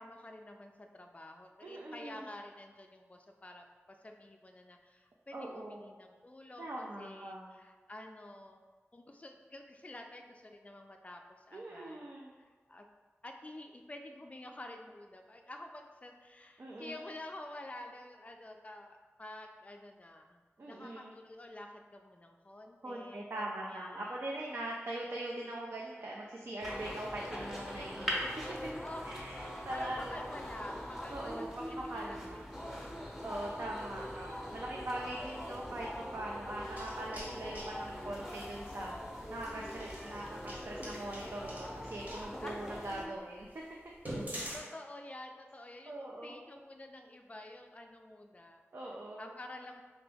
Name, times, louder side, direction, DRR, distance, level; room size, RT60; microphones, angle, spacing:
voice 1, 0.0-8.6 8.9-11.2 11.5-12.0 12.4-12.9 13.2-24.6 28.8-29.4 29.7-33.2 33.7-34.5 37.1-38.0 42.4-42.5 44.5-48.6 49.2-49.8, left 1 dB, 30° left, 3 dB, 0.3 m, -50 dB
voice 2, 1.6-2.3 5.3-5.8 6.6-7.5 11.5-12.3 16.6-17.0 20.6-21.1 22.8-28.3 29.0-29.4 29.6-30.3 31.1-32.5 33.2-43.5 45.9-46.4 48.7-49.3, right 1 dB, 60° right, -3 dB, 0.4 m, -42 dB
sound 1, 26.6-43.0, equal, 5° right, 0.8 m, -42 dB
sound 2, 36.5-37.7 39.3-42.3 42.8-42.9 43.4-43.5 43.9-44.6, right 1 dB, 35° right, 1.0 m, -44 dB
2.9 x 2.6 x 3.4 m, 1.4 s
wide cardioid pair, 60°, 5 cm